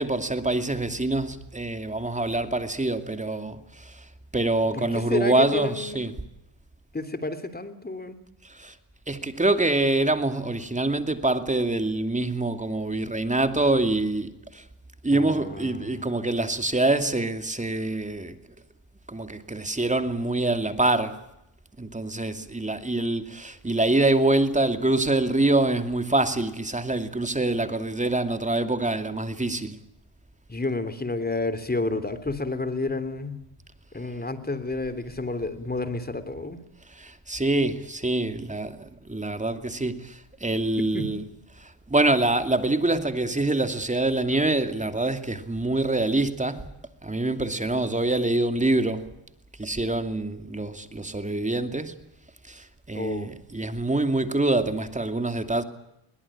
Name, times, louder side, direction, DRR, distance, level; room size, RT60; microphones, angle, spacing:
voice 1, 0.0-4.1 4.3-6.2 8.4-8.7 9.1-14.6 15.0-18.4 19.1-21.2 21.8-29.8 36.9-41.2 41.6-46.7 47.0-49.1 49.6-52.0 52.5-55.6, right 2 dB, 15° right, 2.6 m, -25 dB
voice 2, 4.7-6.1 6.9-8.2 15.1-16.1 30.5-33.4 33.9-36.6 40.8-41.1 52.9-53.3, left 2 dB, 20° left, 3.4 m, -30 dB
22.0 x 20.5 x 8.7 m
cardioid pair, 80°, 49 cm